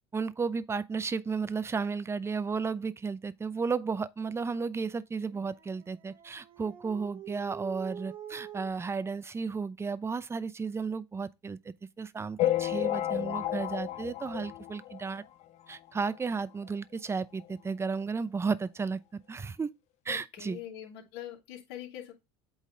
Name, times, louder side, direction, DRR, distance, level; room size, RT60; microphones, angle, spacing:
voice 1, 0.1-15.2 15.7-19.7 20.1-20.6, right 5 dB, 20° right, 0.6 m, -33 dB
Dog, 5.2-8.7, right 8 dB, 40° right, 1.3 m, -46 dB
sound 1, 12.4-15.2 15.7-15.8 16.0-16.2 16.4-16.5 17.4-17.5 18.0-18.1, left 13 dB, 55° left, 1.0 m, -31 dB
voice 2, 20.1-22.1, left 11 dB, 80° left, 2.8 m, -43 dB
8.3 x 4.0 x 3.8 m
supercardioid pair, 90°, 13 cm